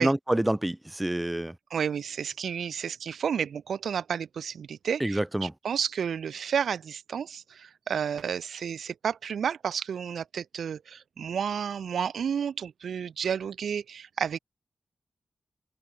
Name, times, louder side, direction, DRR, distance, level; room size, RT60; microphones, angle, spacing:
voice 1, 0.0-1.6 5.0-5.5, right 1 dB, 10° right, 4.0 m, -27 dB
voice 2, 1.7-14.4, right 7 dB, 85° right, 4.4 m, -31 dB
open air
wide cardioid pair, 155°, 0 cm